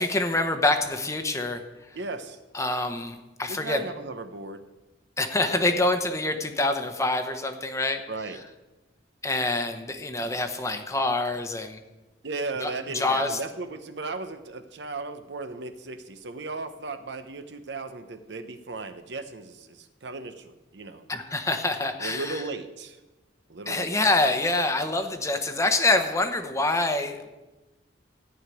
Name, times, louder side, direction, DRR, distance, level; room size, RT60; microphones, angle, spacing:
voice 1, 0.0-2.0 2.5-3.8 5.2-8.0 9.2-11.8 12.6-13.4 21.1-22.4 23.7-27.3, left 2 dB, 15° left, 6 dB, 0.9 m, -26 dB
voice 2, 1.9-2.4 3.5-4.6 5.4-5.8 8.1-8.4 12.2-21.1 22.0-23.0 23.5-23.9, right 3 dB, 70° right, 9 dB, 0.9 m, -36 dB
14.5 x 4.9 x 9.2 m, 1.1 s
head